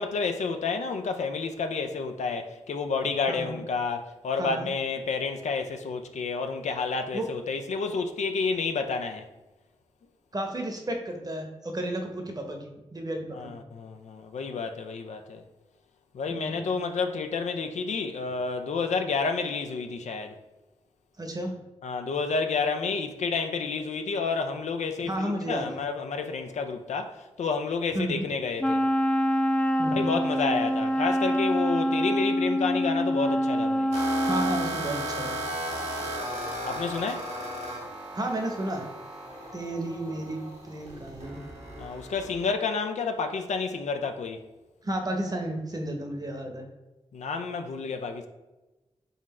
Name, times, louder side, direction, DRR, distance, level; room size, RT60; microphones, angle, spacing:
voice 1, 0.0-9.3 13.4-15.4 16.1-20.3 21.8-28.8 29.9-33.9 36.6-37.3 41.8-44.4 47.1-48.3, left 4 dB, 75° left, 0.4 m, -30 dB
voice 2, 3.3-3.6 4.4-4.7 7.1-7.3 10.3-13.6 16.3-16.7 21.2-21.5 25.0-25.8 27.9-28.3 29.8-30.1 34.3-35.4 38.1-38.9 39.5-41.4 44.8-46.6, right 1 dB, 35° right, 0.8 m, -32 dB
Wind instrument woodwind instrument, 28.6-34.7, equal, 10° left, 0.3 m, -25 dB
sound 1, 33.9-42.5, right 1 dB, 75° right, 1.5 m, -36 dB
4.0 x 2.4 x 4.2 m
cardioid pair, 55°, 12 cm